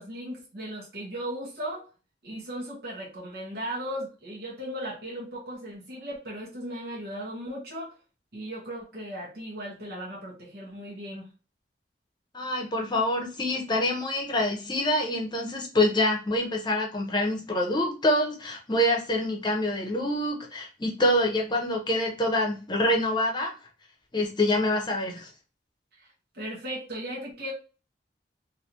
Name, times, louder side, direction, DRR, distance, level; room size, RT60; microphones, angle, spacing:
voice 1, 0.0-1.9 2.2-7.9 8.3-11.3 26.0-27.5, equal, 60° right, -4 dB, 1.0 m, -37 dB
voice 2, 12.3-23.5 24.1-25.3, left 1 dB, 25° left, 1 dB, 0.8 m, -26 dB
3.1 x 2.6 x 2.9 m, 0.33 s
head